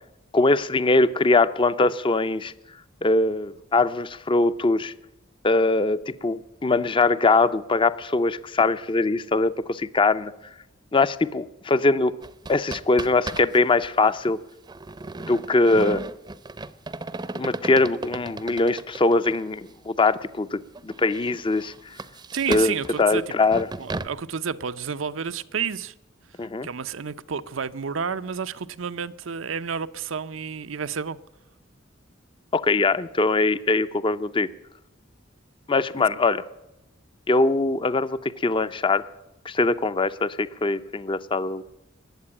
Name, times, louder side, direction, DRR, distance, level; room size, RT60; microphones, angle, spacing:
voice 1, 0.3-2.5 3.0-4.9 5.4-10.3 10.9-12.1 12.5-14.4 15.2-16.0 17.3-21.7 22.5-23.7 26.4-26.7 32.5-34.5 35.7-36.4 37.3-39.1 39.5-41.6, left 3 dB, 25° left, 0.5 m, -22 dB
sound 1, 12.2-13.6 13.8-13.9 14.7-19.5 20.1-20.2 20.7-24.1, right 2 dB, 20° right, 0.6 m, -35 dB
voice 2, 22.3-23.2 23.8-25.9 26.6-31.2, right 6 dB, 90° right, 0.7 m, -30 dB
20.5 x 7.8 x 8.6 m
head